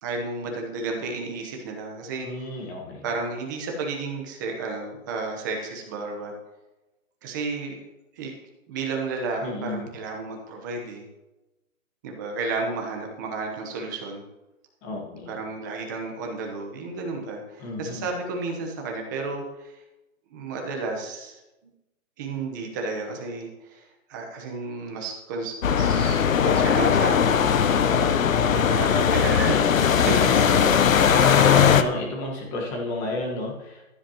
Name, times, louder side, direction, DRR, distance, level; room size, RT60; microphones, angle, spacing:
voice 1, 0.0-2.5 3.0-6.3 7.2-7.8 8.2-8.3 8.7-11.0 12.0-14.2 15.3-19.7 20.3-21.4 22.2-27.4 28.5-30.3, right 3 dB, 15° right, 1 dB, 0.9 m, -32 dB
voice 2, 2.2-3.1 9.4-9.8 14.8-15.4 17.6-18.1 30.3-33.8, left 2 dB, 15° left, -1 dB, 1.3 m, -31 dB
sound 1, 25.6-31.8, left 7 dB, 70° left, 0.8 m, -19 dB
15.0 x 10.5 x 2.9 m, 1.0 s
hypercardioid pair, 165°, 41 cm